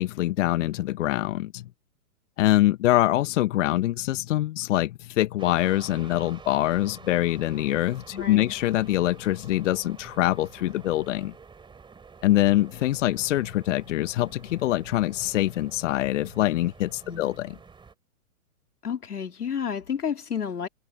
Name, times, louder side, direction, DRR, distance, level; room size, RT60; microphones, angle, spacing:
voice 1, 0.0-1.7 2.4-11.3 12.2-17.5, left 15 dB, 55° left, 0.9 m, -24 dB
sound 1, 5.4-17.9, right 5 dB, 10° right, 3.1 m, -48 dB
voice 2, 8.1-8.5 17.1-17.2 18.8-20.7, left 7 dB, 90° left, 2.5 m, -31 dB
hypercardioid pair, 120°, 44 cm